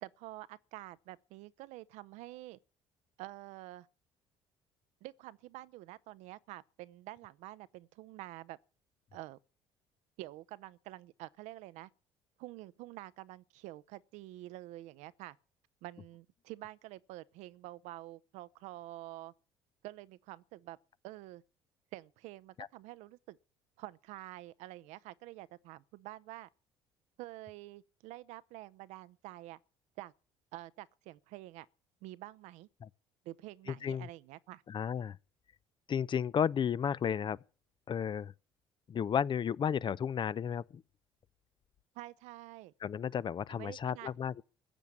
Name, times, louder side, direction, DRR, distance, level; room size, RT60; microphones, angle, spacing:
voice 1, 0.0-2.6 3.2-3.9 5.0-8.6 9.1-9.4 10.2-11.9 12.4-15.4 15.8-19.3 19.8-20.8 21.0-21.4 21.9-23.4 23.8-26.5 27.2-29.6 30.0-30.1 30.5-31.7 32.0-32.7 33.2-34.6 41.9-42.7 43.5-44.1, right 17 dB, 75° right, 0.7 m, -48 dB
voice 2, 34.7-35.2 35.9-37.4 37.9-38.3 38.9-40.8 42.8-44.4, left 8 dB, 40° left, 0.6 m, -33 dB
15.5 x 7.2 x 9.4 m
hypercardioid pair, 65°, 12 cm